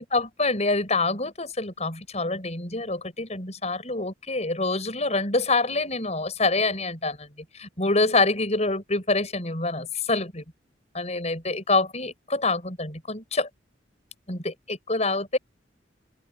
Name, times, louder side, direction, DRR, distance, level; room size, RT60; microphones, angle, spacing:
voice 1, 0.0-7.3 7.6-10.4 10.9-13.5 14.3-15.4, left 3 dB, 35° left, 7.2 m, -26 dB
head